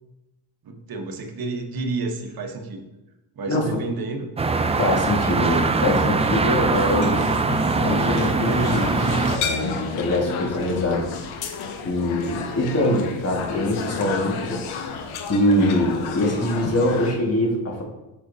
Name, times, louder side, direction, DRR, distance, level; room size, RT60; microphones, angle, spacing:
voice 1, 0.6-2.8 3.4-4.3 10.6-10.7, right 3 dB, 50° right, 5 dB, 1.1 m, -30 dB
sound 1, 4.4-9.4, right 4 dB, 15° right, 0.3 m, -22 dB
voice 2, 4.8-7.3 7.8-8.9 9.3-11.1 11.9-15.0 15.3-17.8, left 1 dB, 30° left, 0 dB, 1.7 m, -23 dB
sound 2, 6.7-17.1, left 5 dB, 85° left, 0.8 m, -31 dB
6.3 x 5.9 x 2.7 m, 1.0 s
supercardioid pair, 65°, 47 cm